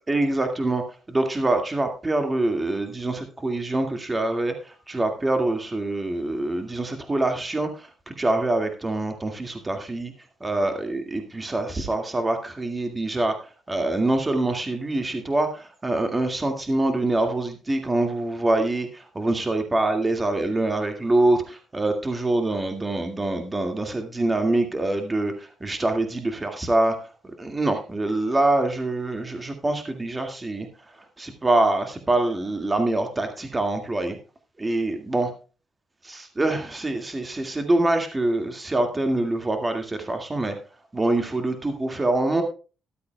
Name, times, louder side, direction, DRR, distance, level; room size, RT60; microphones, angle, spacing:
voice 1, 0.1-10.1 10.4-27.0 27.2-30.7 30.9-34.2 34.6-35.3 36.0-40.5 40.9-42.4, right 2 dB, 20° right, 6 dB, 1.9 m, -25 dB
13.5 x 12.0 x 2.2 m, 0.35 s
cardioid pair, 90°, 0 cm